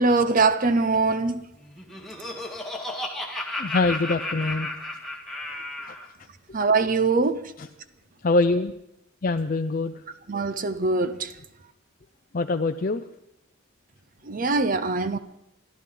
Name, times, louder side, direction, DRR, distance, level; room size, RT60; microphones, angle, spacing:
voice 1, 0.0-1.4 6.5-7.5 10.3-11.3 14.3-15.2, right 3 dB, 40° right, 0.7 m, -22 dB
Laughter, 1.6-6.1, left 1 dB, ahead, 1.9 m, -33 dB
voice 2, 3.6-4.7 5.9-6.0 8.2-8.7 9.2-9.9 12.3-13.0, left 3 dB, 40° left, 0.5 m, -24 dB
28.0 x 12.5 x 3.9 m
head